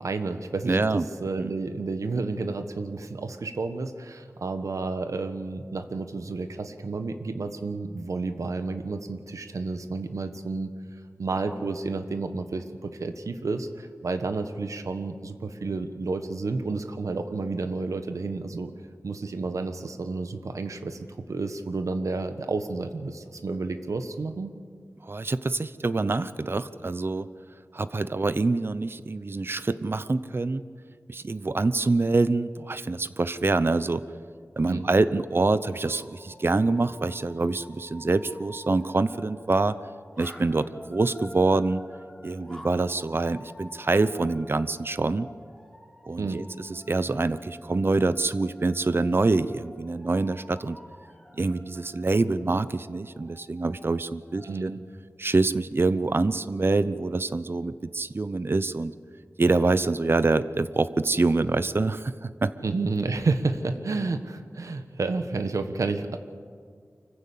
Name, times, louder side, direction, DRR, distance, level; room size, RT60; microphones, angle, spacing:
voice 1, 0.0-10.7 11.2-18.7 19.0-21.0 21.3-24.5 34.7-34.9 46.2-46.4 54.4-54.8 62.6-66.2, right 3 dB, 90° right, 8 dB, 1.2 m, -31 dB
voice 2, 0.7-1.0 1.4-1.5 25.0-27.3 27.7-30.6 31.1-34.0 34.6-39.8 40.2-41.8 42.2-45.3 46.1-50.8 51.4-54.8 55.2-58.9 59.4-62.5, right 3 dB, 45° right, 14 dB, 0.7 m, -25 dB
sound 1, 35.7-54.6, left 1 dB, 5° left, 3.9 m, -50 dB
24.5 x 15.0 x 8.5 m, 2.1 s
wide cardioid pair, 85°, 5 cm